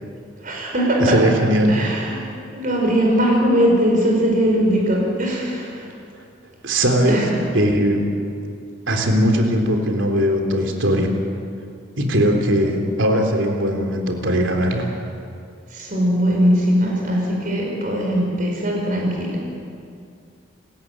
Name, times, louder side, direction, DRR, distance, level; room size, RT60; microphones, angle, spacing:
voice 1, 0.4-1.2 1.7-2.2 2.5-5.9 7.1-7.4 15.7-19.3, equal, 40° right, -1 dB, 5.1 m, -20 dB
voice 2, 1.0-1.8 6.6-7.2 7.5-8.1 8.9-11.1 12.0-14.9, equal, 70° right, 2 dB, 3.6 m, -19 dB
29.5 x 14.0 x 9.1 m, 2.4 s
head